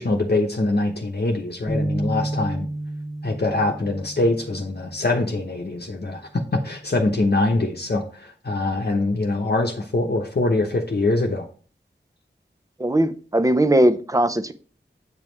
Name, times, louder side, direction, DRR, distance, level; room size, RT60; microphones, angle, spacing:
voice 1, 0.0-2.7 3.2-11.5, left 2 dB, 55° left, 0.9 m, -23 dB
sound 1, 1.7-5.2, right 1 dB, 10° left, 1.2 m, -30 dB
voice 2, 12.8-14.5, right 1 dB, 15° right, 0.6 m, -19 dB
8.4 x 5.2 x 3.2 m
wide cardioid pair, 65°, 20 cm